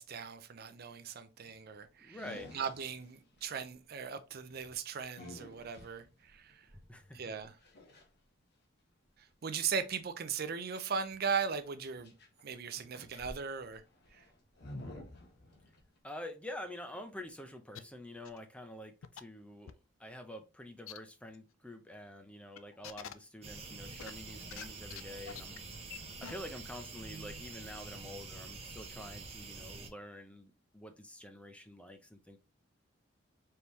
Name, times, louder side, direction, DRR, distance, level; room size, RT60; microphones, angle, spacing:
voice 1, 0.0-2.2 2.5-6.7 7.1-7.5 9.4-12.1 12.4-13.8 14.1-14.2, right 6 dB, 50° right, 0.5 m, -38 dB
sound 1, 1.4-1.7 2.1-3.4 4.3-8.1 10.9-12.4 12.7-16.0, left 1 dB, 55° left, 1.1 m, -51 dB
voice 2, 2.0-2.5 6.9-7.2 16.0-19.7 20.0-25.6 26.2-32.4, left 1 dB, 5° left, 0.5 m, -47 dB
sound 2, 17.7-17.8 18.2-18.4 19.0-19.2 19.7-19.8 20.9-21.0 21.3-21.4 22.6-23.1 24.0-24.6 24.9-25.0 25.3-25.6 25.9-26.0 26.2-26.3, left 8 dB, 90° left, 0.5 m, -45 dB
sound 3, 23.4-29.9, right 3 dB, 30° right, 0.9 m, -47 dB
4.4 x 3.4 x 3.0 m
head